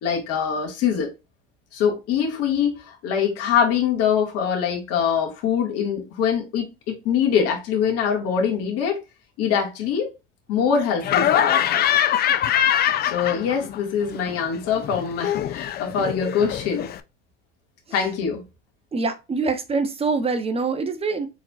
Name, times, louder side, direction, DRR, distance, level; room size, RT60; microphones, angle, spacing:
voice 1, 0.0-1.1 1.7-9.0 9.4-10.1 10.5-11.9 13.0-16.9 17.9-18.4, left 7 dB, 55° left, 1.9 m, -23 dB
Laughter, 11.0-13.8 14.1-17.0, left 10 dB, 35° left, 0.4 m, -23 dB
voice 2, 18.9-21.3, right 4 dB, 20° right, 0.8 m, -24 dB
4.4 x 3.9 x 2.4 m
supercardioid pair, 105°, 29 cm